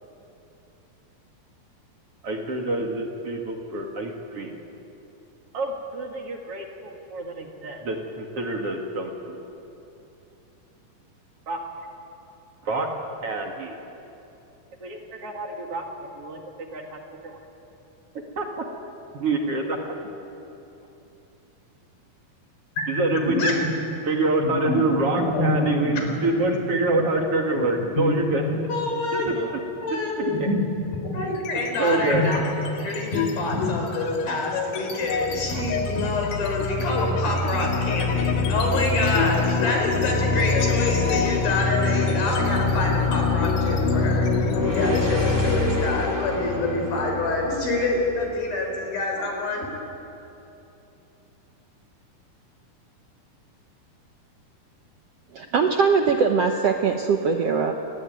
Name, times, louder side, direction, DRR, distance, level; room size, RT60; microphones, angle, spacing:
voice 1, 2.2-4.6 5.5-9.4 11.5-11.9 12.6-12.9 13.2-13.8 14.8-15.8 16.2-16.4 16.7-17.4 18.4-18.6 19.1-19.9 22.9-23.7 24.0-28.4 29.1-29.6 29.9-30.5 31.8-32.2, right 2 dB, 45° right, 2 dB, 2.7 m, -27 dB
voice 2, 22.8-23.6 24.4-24.8 25.2-26.5 26.9-27.0 27.9-28.1 28.7-29.3 29.8-30.6 30.9-44.3 44.6-49.7, left 2 dB, 85° left, 2 dB, 6.5 m, -26 dB
sound 1, 31.4-31.9 32.2-48.8, left 4 dB, 70° left, 2.8 m, -25 dB
sound 2, 44.3-48.5, right 1 dB, 5° right, 1.8 m, -33 dB
voice 3, 55.3-57.7, right 5 dB, 65° right, 4 dB, 1.6 m, -21 dB
28.5 x 19.5 x 9.3 m, 2.9 s
omnidirectional pair, 4.1 m